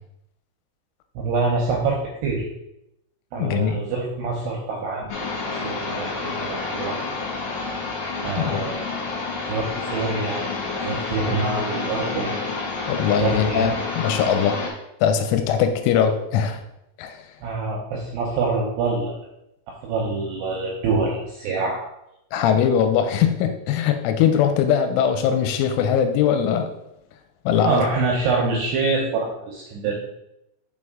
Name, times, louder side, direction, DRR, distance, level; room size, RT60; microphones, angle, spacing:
voice 1, 1.2-2.5 3.3-5.1 5.6-7.0 8.2-8.9 9.5-10.4 10.8-12.4 13.2-13.8 17.4-19.1 19.8-21.8 27.6-29.9, right 3 dB, 80° right, -2 dB, 2.4 m, -25 dB
voice 2, 3.3-3.8 8.4-8.7 12.9-14.6 15.0-16.6 17.0-17.2 22.3-26.7 27.5-27.9, left 8 dB, 85° left, 7 dB, 2.9 m, -21 dB
sound 1, 5.1-14.7, left 4 dB, 60° left, 2.7 m, -29 dB
6.4 x 4.4 x 3.6 m, 0.84 s
omnidirectional pair, 5.7 m